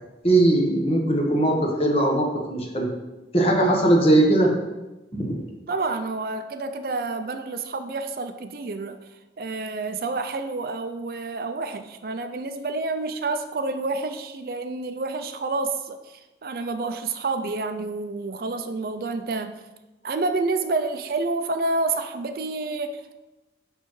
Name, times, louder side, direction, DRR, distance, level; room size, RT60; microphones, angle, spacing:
voice 1, 0.2-2.9 3.3-4.5 5.1-5.4, right 1 dB, 35° left, 0 dB, 1.1 m, -20 dB
voice 2, 5.7-9.0 9.4-19.6 20.0-23.2, right 3 dB, 55° right, 8 dB, 0.4 m, -29 dB
6.5 x 5.5 x 3.1 m, 1.1 s
head